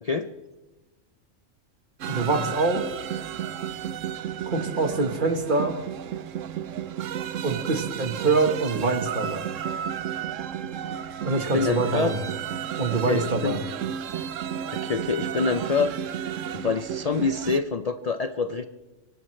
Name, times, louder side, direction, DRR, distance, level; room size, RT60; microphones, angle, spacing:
sound 1, 2.0-17.6, right 9 dB, 75° right, 1.1 m, -32 dB
voice 1, 2.1-2.9 4.5-5.8 7.4-9.5 11.2-12.2 12.8-13.6, right 3 dB, 40° right, 7 dB, 1.5 m, -25 dB
voice 2, 11.4-12.2 13.1-13.6 14.7-18.6, left 5 dB, 45° left, 10 dB, 0.5 m, -27 dB
24.0 x 18.5 x 3.2 m, 1.2 s
omnidirectional pair, 1.3 m